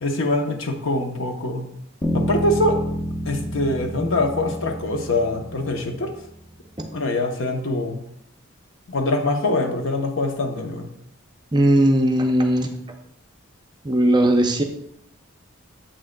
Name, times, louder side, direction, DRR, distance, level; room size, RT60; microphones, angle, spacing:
voice 1, 0.0-1.7 2.1-2.8 3.3-6.1 6.9-8.0 8.9-10.9, left 2 dB, 65° left, 4 dB, 0.8 m, -24 dB
sound 1, 2.0-6.4, equal, 20° left, 0.8 m, -29 dB
voice 2, 11.5-12.7 13.8-14.6, right 1 dB, 20° right, 4 dB, 0.5 m, -18 dB
7.7 x 6.2 x 2.2 m, 0.76 s
head